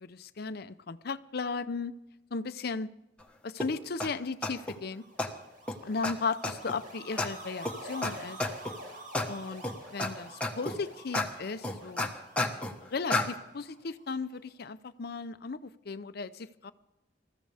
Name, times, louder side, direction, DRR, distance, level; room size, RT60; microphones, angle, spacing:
voice 1, 0.0-1.9 2.3-2.9 3.4-5.0 5.8-8.4 9.3-9.6 9.9-12.1 12.6-16.7, left 4 dB, 55° left, 0.6 m, -36 dB
sound 1, 3.6-3.7 4.0-4.1 4.4-4.7 5.2-5.3 5.7-5.8 6.0-6.1 6.4-6.8 7.2-7.3 7.6-7.7 8.0-8.1 8.4-8.7 9.1-9.3 9.6-10.1 10.4-10.8 11.1-11.3 11.6-12.7 13.1-13.2, left 2 dB, 5° left, 1.3 m, -30 dB
sound 2, 4.8-14.1, right 1 dB, 45° right, 4.7 m, -48 dB
21.0 x 14.0 x 3.4 m
head